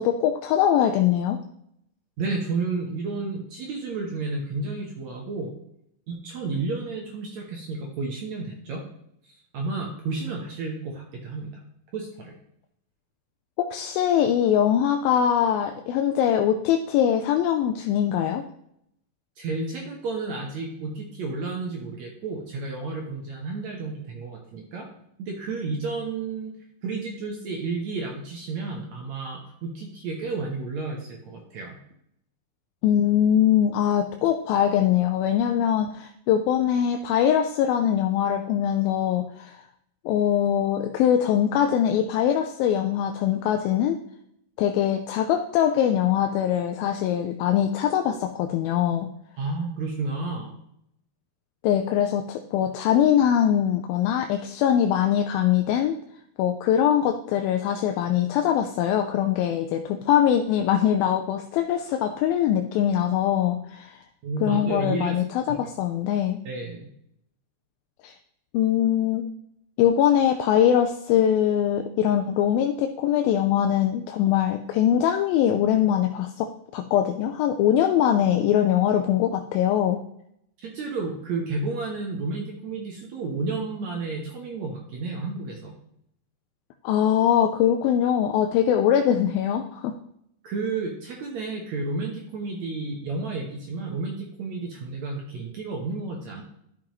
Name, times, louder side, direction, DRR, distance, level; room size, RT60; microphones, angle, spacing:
voice 1, 0.0-1.4 13.6-18.4 32.8-39.6 40.1-44.0 44.6-49.1 51.6-56.0 56.4-64.0 64.4-66.4 68.0-68.1 68.5-69.3 69.8-80.0 86.8-89.9, left 10 dB, 80° left, 5 dB, 2.3 m, -22 dB
voice 2, 2.2-5.5 6.1-8.8 9.5-11.5 11.9-12.3 19.4-24.9 25.2-26.5 26.8-31.8 49.4-50.5 64.2-65.2 65.5-65.6 66.5-66.9 80.6-85.7 90.4-96.4, right 3 dB, 65° right, 0 dB, 1.9 m, -31 dB
12.0 x 6.0 x 3.1 m, 0.74 s
omnidirectional pair, 4.3 m